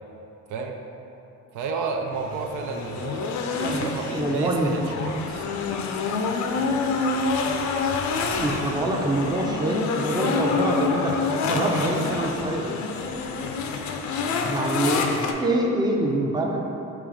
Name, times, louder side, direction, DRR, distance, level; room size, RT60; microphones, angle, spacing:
voice 1, 1.5-5.5, right 4 dB, 80° right, 3 dB, 0.5 m, -32 dB
sound 1, 2.1-15.3, left 4 dB, 70° left, 0.5 m, -27 dB
voice 2, 3.6-4.7 8.3-11.1 11.5-12.7 14.4-15.0 15.4-16.6, right 1 dB, 15° right, 0 dB, 0.5 m, -25 dB
3.7 x 3.0 x 4.9 m, 2.9 s
cardioid pair, 90°, 30 cm